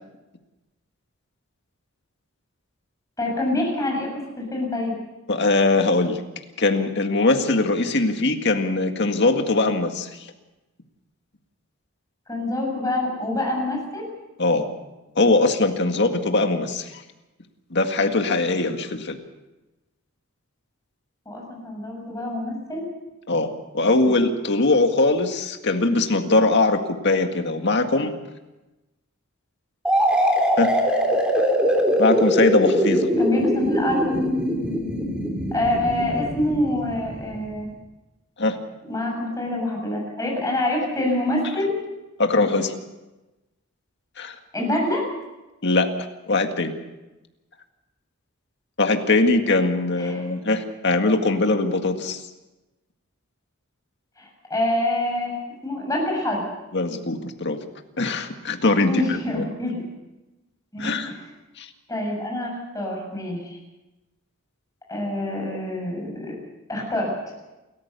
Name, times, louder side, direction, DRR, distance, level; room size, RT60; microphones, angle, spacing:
voice 1, 3.2-4.9 12.3-14.1 21.3-22.8 24.0-24.1 33.2-34.2 35.5-37.7 38.9-41.8 44.5-45.1 50.0-50.2 54.2-56.4 58.8-59.8 60.7-61.3 61.9-63.6 64.9-66.3 66.7-67.2, left 1 dB, 15° left, -1 dB, 7.3 m, -26 dB
voice 2, 5.3-6.2 6.6-10.1 14.4-14.7 15.2-17.0 17.7-19.2 23.3-28.1 30.6-30.7 32.0-33.1 38.4-38.6 42.2-42.7 44.2-44.4 45.6-45.9 46.3-46.7 48.8-52.2 56.7-57.6 58.0-59.4 60.8-61.2 61.6-61.7, left 2 dB, 55° left, 5 dB, 1.9 m, -21 dB
sound 1, 29.8-37.5, equal, 5° right, 3.5 m, -22 dB
29.0 x 14.5 x 6.9 m, 1.1 s
head